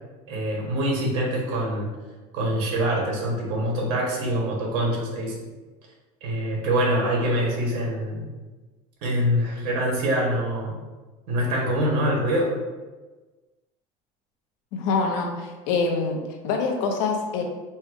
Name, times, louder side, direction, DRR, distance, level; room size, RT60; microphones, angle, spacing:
voice 1, 0.3-1.9 2.3-5.4 6.2-8.3 9.0-10.8 11.3-12.5, equal, 70° right, -2 dB, 1.4 m, -24 dB
voice 2, 14.7-17.4, left 4 dB, 75° left, 2 dB, 0.8 m, -25 dB
4.4 x 2.3 x 4.5 m, 1.3 s
cardioid pair, 150°, 15 cm